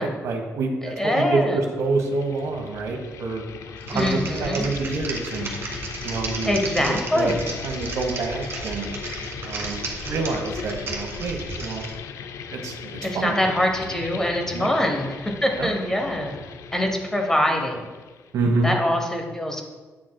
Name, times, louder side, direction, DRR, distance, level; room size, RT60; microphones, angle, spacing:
voice 1, 0.0-3.4 3.9-5.5 6.0-6.5 7.1-7.3 7.6-8.9 9.4-11.8 12.5-13.4 14.5-14.7 15.6-15.7 18.3-18.7, right 3 dB, 85° right, 3 dB, 1.0 m, -27 dB
voice 2, 1.0-1.6 3.9-4.7 6.5-7.4 13.0-16.3 16.7-17.9 18.6-19.6, left 1 dB, 10° left, 2 dB, 0.8 m, -24 dB
sound 1, 1.7-18.4, left 7 dB, 70° left, 0.4 m, -38 dB
Typing, 3.8-11.9, right 3 dB, 50° right, 1.3 m, -34 dB
8.4 x 6.3 x 2.2 m, 1.3 s
cardioid pair, 130°, 5 cm